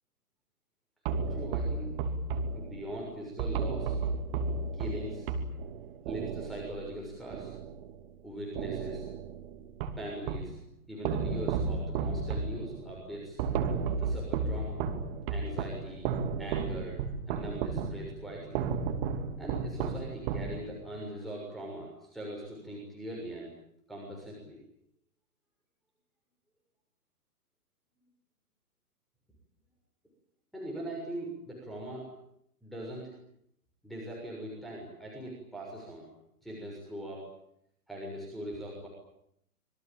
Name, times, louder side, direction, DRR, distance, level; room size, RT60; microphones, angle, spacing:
sound 1, 1.1-8.2 8.6-10.6 11.0-21.0, right 5 dB, 35° right, 2.9 m, -33 dB
voice 1, 1.3-2.0 2.5-4.0 4.7-5.3 6.1-7.5 8.2-9.1 10.0-10.6 10.9-13.4 14.0-14.8 15.3-16.1 16.4-18.6 19.4-23.5 23.9-24.6 30.5-32.1 32.6-33.1 33.8-36.1 36.4-37.3 37.9-38.9, right 1 dB, ahead, -4 dB, 6.6 m, -41 dB
26.0 x 22.5 x 9.0 m, 0.75 s
figure-of-eight pair, 125°, 45 cm